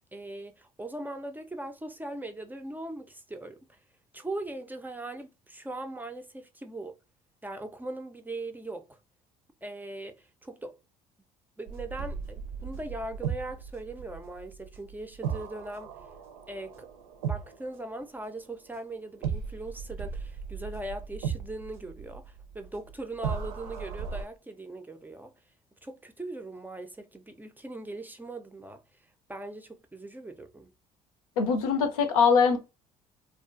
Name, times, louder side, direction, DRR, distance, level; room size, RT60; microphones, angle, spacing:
voice 1, 0.1-3.6 4.1-6.9 7.4-9.0 9.6-10.8 11.6-15.9 16.5-16.9 17.2-25.3 25.8-28.8 29.3-30.7, right 2 dB, 10° right, 0.4 m, -40 dB
sound 1, 11.7-18.7 19.2-24.2, right 7 dB, 75° right, 0.6 m, -37 dB
voice 2, 31.4-32.6, left 5 dB, 80° left, 0.5 m, -22 dB
2.4 x 2.3 x 2.5 m
hypercardioid pair, 60°, 18 cm